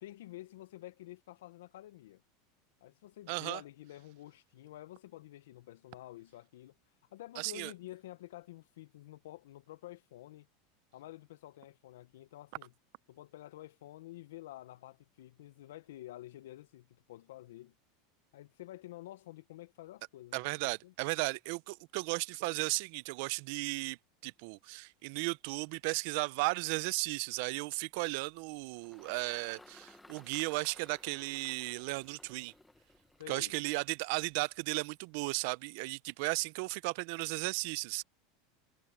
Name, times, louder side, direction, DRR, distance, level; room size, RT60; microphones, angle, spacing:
voice 1, 0.0-2.2 2.8-6.8 7.1-10.5 10.9-12.7 13.1-17.8 18.3-20.9 33.2-33.6, left 15 dB, 80° left, 0.9 m, -50 dB
voice 2, 3.3-3.6 7.4-7.7 20.3-24.0 24.2-32.5 33.3-38.0, right 26 dB, 65° right, 0.7 m, -35 dB
Engine, 28.0-34.6, left 2 dB, 5° left, 1.4 m, -59 dB
supercardioid pair, 115°, 0 cm